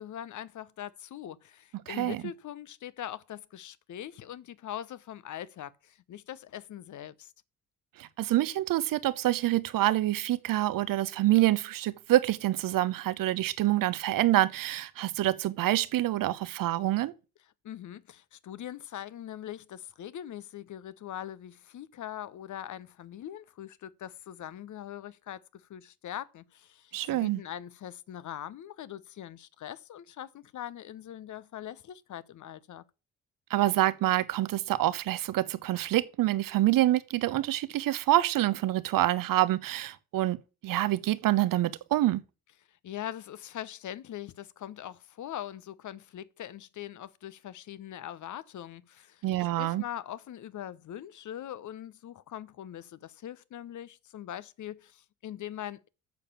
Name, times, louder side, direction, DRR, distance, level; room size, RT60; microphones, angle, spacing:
voice 1, 0.0-7.3 17.6-32.8 42.7-49.2 49.6-55.9, left 11 dB, 45° left, 0.9 m, -42 dB
voice 2, 1.9-2.2 8.0-17.1 26.9-27.4 33.5-40.4 40.6-42.2 49.2-49.8, right 15 dB, 50° right, 0.9 m, -26 dB
7.7 x 6.8 x 6.9 m
figure-of-eight pair, 45°, 43 cm